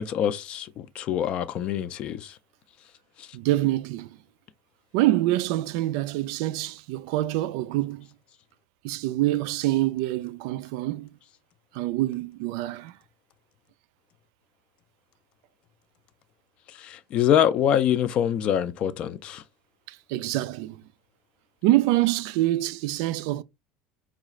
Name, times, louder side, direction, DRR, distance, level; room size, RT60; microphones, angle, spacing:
voice 1, 0.0-2.3 16.8-19.4, left 9 dB, 35° left, 0.4 m, -25 dB
voice 2, 3.3-4.2 4.9-8.1 8.8-11.1 11.7-12.9 19.9-20.8 21.6-23.4, right 16 dB, 65° right, 0.3 m, -25 dB
4.8 x 2.4 x 3.0 m
cardioid pair, 170°, 3 cm